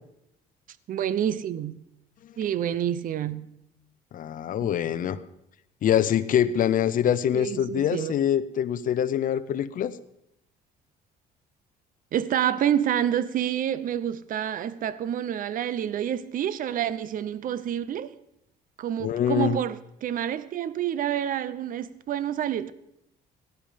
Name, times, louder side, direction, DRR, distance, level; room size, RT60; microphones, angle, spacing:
voice 1, 0.9-1.8 2.4-3.5 7.3-8.1 12.1-18.1 18.8-22.7, right 10 dB, 55° right, 0.8 m, -28 dB
voice 2, 4.1-5.2 5.8-9.9 19.0-19.6, left 9 dB, 55° left, 0.9 m, -24 dB
17.5 x 11.0 x 5.2 m
cardioid pair, 110°, 17 cm